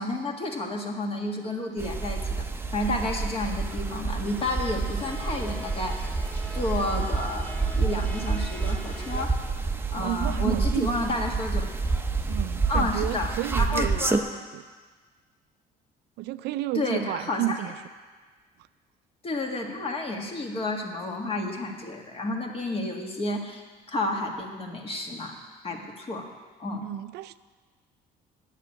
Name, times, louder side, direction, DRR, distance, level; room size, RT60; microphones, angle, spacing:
voice 1, 0.0-2.4 2.7-6.0 6.5-9.3 9.9-11.7 12.7-13.3 13.6-14.2 16.7-17.6 19.2-23.6 23.9-25.3 25.6-26.3 26.6-26.9, left 2 dB, 35° left, 1 dB, 1.7 m, -31 dB
sound 1, 1.8-14.2, right 4 dB, 15° right, 0.7 m, -28 dB
sound 2, 4.2-9.3, equal, 10° left, 1.8 m, -43 dB
voice 2, 9.9-11.0 12.3-14.2 14.5-14.6 16.2-17.7 26.8-27.4, right 15 dB, 80° right, 14 dB, 0.4 m, -31 dB
9.8 x 6.7 x 8.4 m, 1.4 s
cardioid pair, 110°, 17 cm